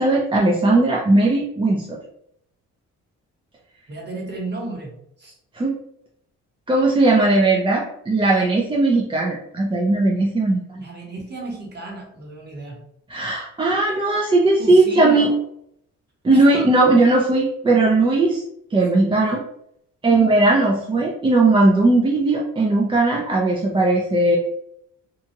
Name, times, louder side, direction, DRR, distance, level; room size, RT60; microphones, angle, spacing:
voice 1, 0.0-2.0 5.6-5.8 6.7-10.8 13.1-15.3 16.2-18.4 18.7-19.4 20.0-24.4, right 2 dB, 15° right, -2 dB, 0.4 m, -18 dB
voice 2, 3.9-4.9 5.2-5.4 10.7-12.8 14.6-15.4 16.3-16.9 20.1-20.3, right 2 dB, 35° right, -1 dB, 1.1 m, -32 dB
2.9 x 2.3 x 2.7 m, 0.74 s
cardioid pair, 90°, 30 cm